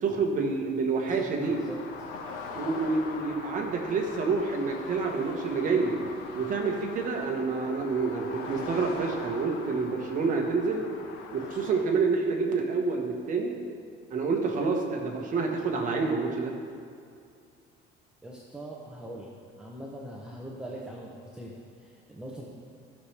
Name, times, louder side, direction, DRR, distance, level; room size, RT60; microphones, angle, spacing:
voice 1, 0.0-1.6 2.5-6.0 6.3-10.8 11.3-13.6 14.1-16.5, right 4 dB, 40° right, 1 dB, 1.1 m, -28 dB
voice 2, 1.0-1.8 18.2-19.3 19.6-22.5, right 1 dB, 5° right, -4 dB, 0.6 m, -42 dB
sound 1, 1.4-11.8, left 4 dB, 85° left, 1.0 m, -42 dB
13.5 x 6.4 x 3.3 m, 2.4 s
cardioid pair, 170°, 21 cm